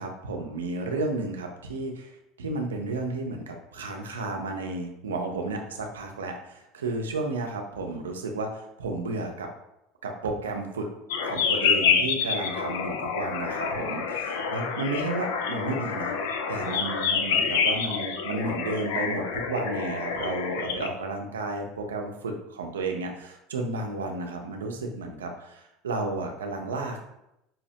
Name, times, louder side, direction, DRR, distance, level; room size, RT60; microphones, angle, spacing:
voice 1, 0.0-2.1 2.4-9.5 10.0-10.9 11.2-16.1 16.5-27.1, right 2 dB, 90° right, 3 dB, 0.5 m, -32 dB
sound 1, 11.1-20.9, left 6 dB, 75° left, 0.3 m, -27 dB
5.5 x 2.0 x 2.8 m, 0.85 s
hypercardioid pair, 80°, 0 cm